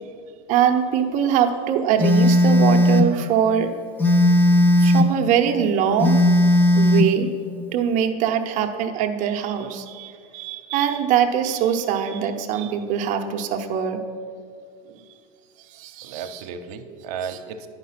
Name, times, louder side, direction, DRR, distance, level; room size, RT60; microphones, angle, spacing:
voice 1, 0.5-3.7 4.8-6.2 6.7-7.3 7.7-14.0 15.7-16.4 17.3-17.4, right 8 dB, 40° right, 5 dB, 0.8 m, -22 dB
Telephone, 2.0-3.1 4.0-5.2 6.0-7.2, left 1 dB, 10° left, 0.4 m, -16 dB
voice 2, 16.0-17.7, right 6 dB, 85° right, 6 dB, 0.7 m, -34 dB
10.0 x 5.4 x 5.8 m, 2.2 s
supercardioid pair, 155°, 19 cm